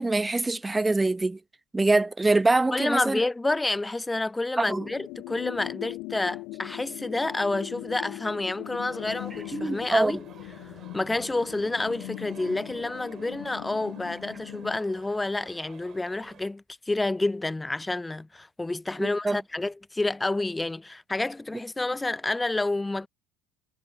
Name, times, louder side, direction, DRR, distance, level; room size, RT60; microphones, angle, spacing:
voice 1, 0.0-1.4 1.7-3.2 4.6-4.9 9.5-10.2 19.0-19.4, right 2 dB, 15° right, 1.7 m, -24 dB
voice 2, 2.7-10.2 10.9-23.1, left 2 dB, 10° left, 0.8 m, -29 dB
sound 1, 4.6-14.8, left 23 dB, 60° left, 0.8 m, -40 dB
sound 2, 8.9-16.5, right 9 dB, 40° right, 4.4 m, -51 dB
figure-of-eight pair, 65°, 0 cm